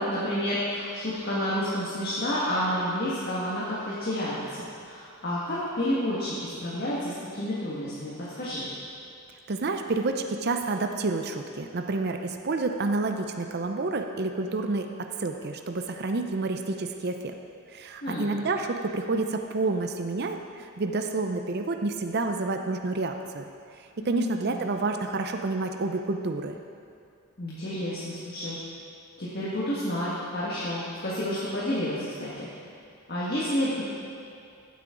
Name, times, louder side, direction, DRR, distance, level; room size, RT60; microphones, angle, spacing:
voice 1, 0.0-8.6 18.0-18.3 24.0-24.6 27.4-28.6 29.2-32.5 33.1-33.8, equal, 45° left, -9 dB, 1.8 m, -30 dB
voice 2, 9.5-17.3 17.7-23.5 23.8-26.6, right 3 dB, 45° right, 5 dB, 0.5 m, -29 dB
15.0 x 8.4 x 3.8 m, 2.4 s
head